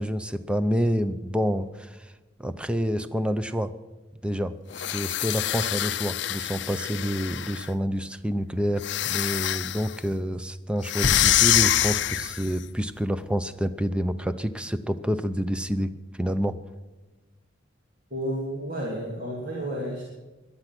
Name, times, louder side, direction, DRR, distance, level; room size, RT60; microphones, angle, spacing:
voice 1, 0.0-2.1 2.4-3.7 4.2-4.5 4.9-15.9 16.2-16.6, equal, 5° right, 11 dB, 0.6 m, -28 dB
sound 1, 4.7-7.7 8.8-9.9 10.8-12.5, left 13 dB, 65° left, 0.5 m, -25 dB
sound 2, 11.0-13.5, left 1 dB, 40° left, 1.2 m, -33 dB
voice 2, 18.1-20.0, equal, 45° right, -3 dB, 3.0 m, -31 dB
18.0 x 12.0 x 6.0 m, 1.2 s
head